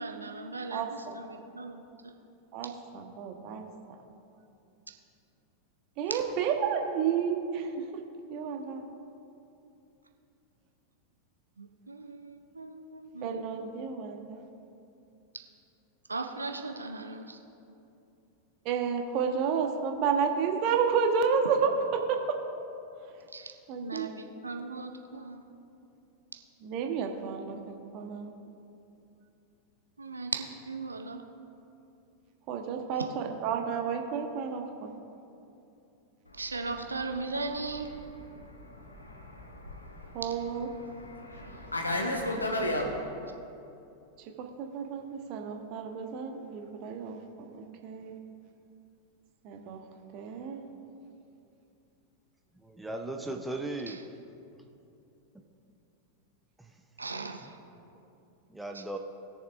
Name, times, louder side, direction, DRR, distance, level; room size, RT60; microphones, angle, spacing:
voice 1, 0.0-1.8 6.1-6.2 11.6-13.4 16.1-17.4 23.3-23.5 23.8-25.4 30.0-31.2 36.3-37.9 53.9-54.0 57.0-57.5 58.7-58.8, right 3 dB, 80° right, 4 dB, 0.7 m, -38 dB
voice 2, 0.7-1.2 2.5-3.6 6.0-7.7 8.3-8.8 13.2-14.4 18.6-22.4 23.7-24.1 26.6-28.3 32.5-35.0 40.1-40.7 44.4-48.2 49.4-49.8 50.1-50.7, right 6 dB, 40° right, 4 dB, 1.1 m, -31 dB
Fixed-wing aircraft airplane, 36.4-42.9, left 1 dB, 85° left, 1.1 m, -35 dB
voice 3, 52.5-54.0 55.3-55.4 56.6-56.7 57.4-57.5 58.5-59.0, right 2 dB, 5° right, 3 dB, 0.7 m, -37 dB
20.5 x 7.0 x 2.5 m, 2.8 s
figure-of-eight pair, 90°, 0 cm